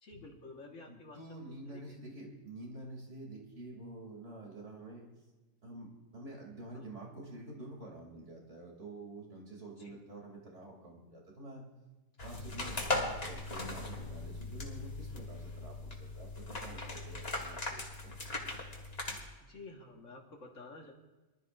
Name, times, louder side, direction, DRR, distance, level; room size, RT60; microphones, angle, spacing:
voice 1, 0.0-1.2 1.5-2.0 6.7-6.9 9.8-10.0 12.6-12.7 17.7-17.8 19.4-20.9, left 3 dB, 60° left, 1 dB, 2.0 m, -51 dB
voice 2, 0.9-5.1 5.6-5.9 6.1-11.7 12.2-18.2, right 2 dB, 55° right, -1 dB, 3.4 m, -48 dB
sound 1, 12.2-19.2, left 2 dB, 45° left, 2.2 m, -39 dB
23.5 x 12.5 x 2.6 m, 1.1 s
omnidirectional pair, 1.4 m